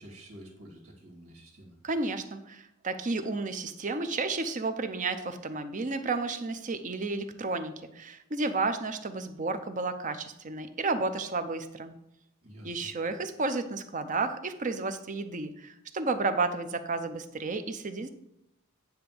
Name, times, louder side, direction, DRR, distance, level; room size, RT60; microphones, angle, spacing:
voice 1, 0.0-1.8 12.4-12.9, right 1 dB, 85° right, -1 dB, 2.4 m, -49 dB
voice 2, 1.8-11.9 12.6-18.1, right 3 dB, 35° right, 9 dB, 0.6 m, -32 dB
9.6 x 3.5 x 6.8 m, 0.81 s
head